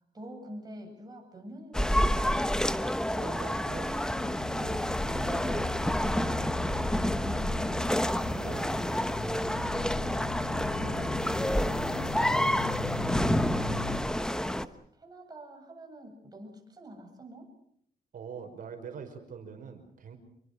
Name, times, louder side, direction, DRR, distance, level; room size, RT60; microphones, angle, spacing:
voice 1, 0.1-2.4 10.6-11.3 11.7-13.2 13.5-17.5, right 1 dB, 25° right, 2 dB, 7.8 m, -47 dB
sound 1, 1.7-14.7, left 1 dB, 5° left, 1.0 m, -29 dB
voice 2, 3.1-4.1 4.5-7.5 8.3-8.7 10.7-11.3 18.1-20.2, right 6 dB, 60° right, 6 dB, 5.4 m, -45 dB
sound 2, 4.2-14.0, left 4 dB, 80° left, 6.3 m, -38 dB
27.5 x 23.5 x 6.5 m, 0.68 s
cardioid pair, 120°, 16 cm